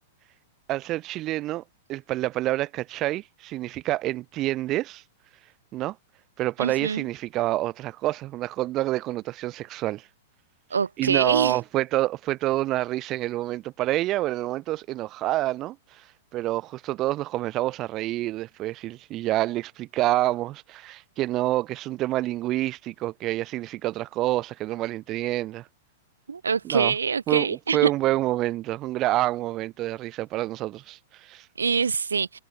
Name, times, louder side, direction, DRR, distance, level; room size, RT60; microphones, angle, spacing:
voice 1, 0.7-1.6 1.9-5.0 5.7-6.0 6.4-10.1 11.0-16.0 16.3-25.6 26.6-26.9 27.3-31.5, right 16 dB, 35° right, 6.4 m, -27 dB
voice 2, 6.6-7.0 10.7-11.6 26.3-27.9 31.6-32.4, right 5 dB, 85° right, 1.9 m, -25 dB
hypercardioid pair, 110°, 0 cm